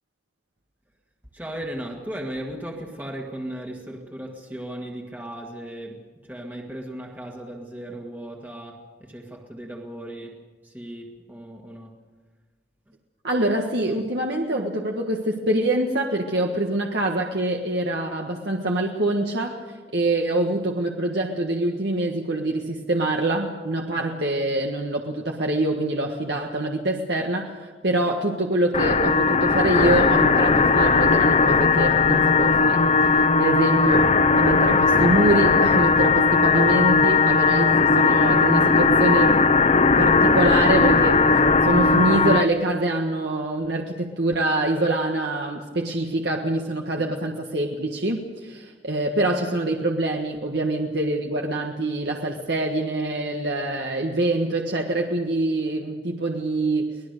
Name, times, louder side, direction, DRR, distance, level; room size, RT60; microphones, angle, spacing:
voice 1, 1.3-12.0 12.9-13.0, right 1 dB, 10° right, 1.8 m, -36 dB
voice 2, 13.2-34.1 34.4-39.4 40.0-41.2 41.6-57.0, right 2 dB, 70° right, 1.6 m, -25 dB
sound 1, 28.7-42.5, left 4 dB, 40° left, 0.7 m, -18 dB
24.5 x 18.5 x 6.7 m
head